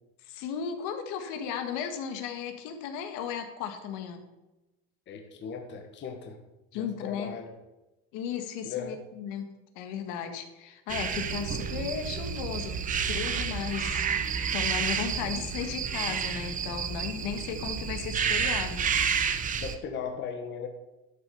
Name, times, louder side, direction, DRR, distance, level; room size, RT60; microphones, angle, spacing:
voice 1, 0.2-4.2 6.7-7.3 8.1-9.5 9.8-14.1 14.5-18.8, left 8 dB, 65° left, 6 dB, 1.8 m, -35 dB
voice 2, 5.1-6.4 6.7-7.5 8.6-9.0 19.6-20.7, left 6 dB, 35° left, 4 dB, 1.5 m, -37 dB
sound 1, 10.9-19.7, right 7 dB, 25° right, 0.8 m, -30 dB
12.0 x 6.4 x 7.0 m, 1.0 s
cardioid pair, 145°, 32 cm